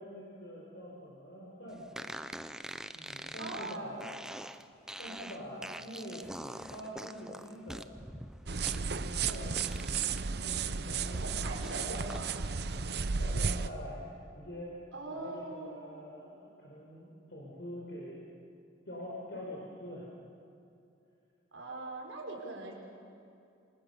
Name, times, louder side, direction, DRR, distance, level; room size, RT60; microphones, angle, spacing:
voice 1, 0.0-2.1 2.9-4.1 5.0-6.3 6.7-7.9 9.0-9.6 10.3-11.4 11.7-12.1 12.8-14.0 14.3-14.8 15.1-18.2 18.9-20.1, equal, 60° left, -3 dB, 4.9 m, -45 dB
sound 1, 1.9-10.3 10.6-12.2, right 1 dB, 5° right, 0.6 m, -45 dB
voice 2, 3.4-4.0 11.1-12.4 14.9-16.2 21.5-22.7, right 2 dB, 85° right, -1 dB, 5.8 m, -42 dB
sound 2, 8.5-13.7, right 5 dB, 55° right, 0.7 m, -33 dB
28.0 x 25.0 x 7.1 m, 2.6 s
head